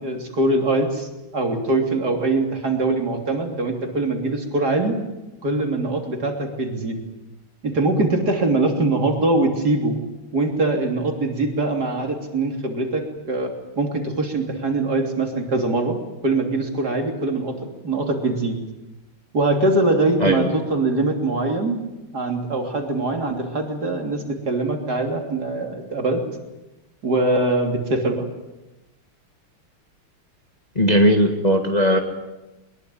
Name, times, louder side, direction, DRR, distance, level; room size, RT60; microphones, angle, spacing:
voice 1, 0.0-5.0 5.4-7.0 7.6-10.0 10.3-17.6 17.8-18.6 19.3-21.8 22.1-26.2 27.0-28.3, right 2 dB, 50° right, 3 dB, 3.7 m, -22 dB
voice 2, 20.2-20.6 30.7-32.0, equal, 20° left, 4 dB, 1.8 m, -18 dB
23.0 x 21.5 x 9.3 m, 1.0 s
omnidirectional pair, 2.3 m